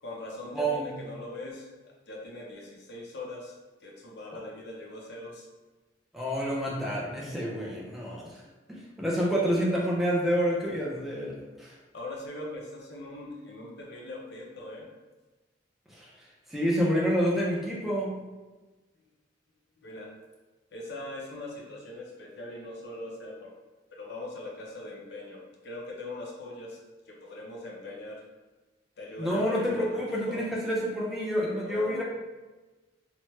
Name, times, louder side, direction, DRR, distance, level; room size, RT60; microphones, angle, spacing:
voice 1, 0.0-3.5 3.8-5.5 11.9-14.9 19.8-20.2 20.7-23.5 23.9-26.8 27.1-28.3 29.0-30.4 31.6-32.0, left 2 dB, 65° left, -1 dB, 0.6 m, -41 dB
voice 2, 0.5-0.9 6.1-8.4 8.7-11.7 15.9-16.1 16.5-18.2 29.2-32.0, equal, ahead, -5 dB, 0.4 m, -28 dB
2.9 x 2.1 x 3.1 m, 1.2 s
head